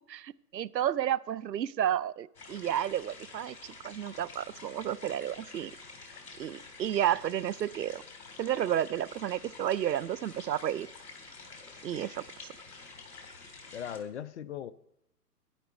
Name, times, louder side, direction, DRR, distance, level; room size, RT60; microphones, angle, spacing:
voice 1, 0.1-5.7 6.4-8.0 8.4-10.9 11.8-12.2, right 11 dB, 85° right, 21 dB, 0.7 m, -31 dB
sound 1, 2.3-14.0, left 3 dB, 65° left, 3.5 m, -49 dB
voice 2, 13.7-14.7, left 9 dB, 45° left, 15 dB, 0.6 m, -38 dB
11.5 x 10.5 x 4.3 m, 0.81 s
hypercardioid pair, 135°, 49 cm